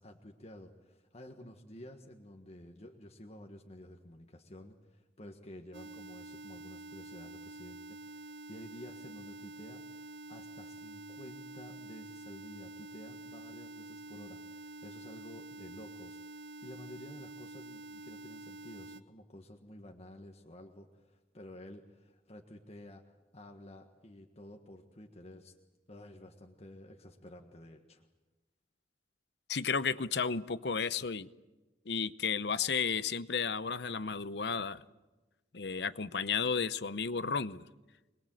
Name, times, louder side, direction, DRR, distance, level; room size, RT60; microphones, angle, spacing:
voice 1, 0.0-25.5 25.9-28.1, left 1 dB, 35° left, 2 dB, 1.6 m, -52 dB
sound 1, 5.7-19.0, right 2 dB, 85° right, 1.0 m, -48 dB
voice 2, 29.5-31.3 31.9-34.8 35.5-37.6, left 6 dB, 65° left, 14 dB, 0.8 m, -33 dB
26.0 x 21.0 x 7.8 m, 1.1 s
head